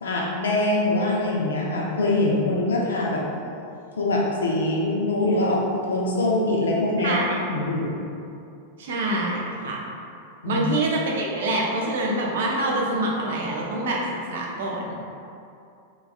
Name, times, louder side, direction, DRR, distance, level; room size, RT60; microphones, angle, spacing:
voice 1, 0.0-3.2 4.0-8.0 10.4-10.7, left 2 dB, 85° left, -3 dB, 0.4 m, -23 dB
voice 2, 7.0-7.4 8.8-9.8 10.4-14.9, right 1 dB, 75° right, -2 dB, 0.5 m, -26 dB
2.9 x 2.4 x 2.3 m, 2.5 s
hypercardioid pair, 105°, 0 cm